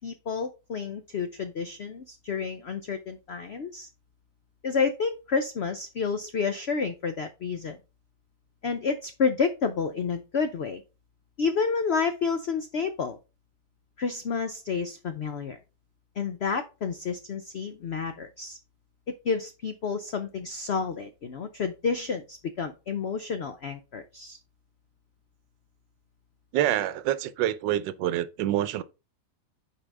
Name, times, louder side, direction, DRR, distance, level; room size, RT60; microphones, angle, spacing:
voice 1, 0.0-3.9 4.6-7.8 8.6-10.8 11.4-13.2 14.0-15.6 16.2-18.6 19.1-24.4, left 5 dB, 85° left, 0.5 m, -30 dB
voice 2, 26.5-28.8, right 12 dB, 80° right, 1.3 m, -26 dB
8.6 x 4.8 x 3.5 m
omnidirectional pair, 1.9 m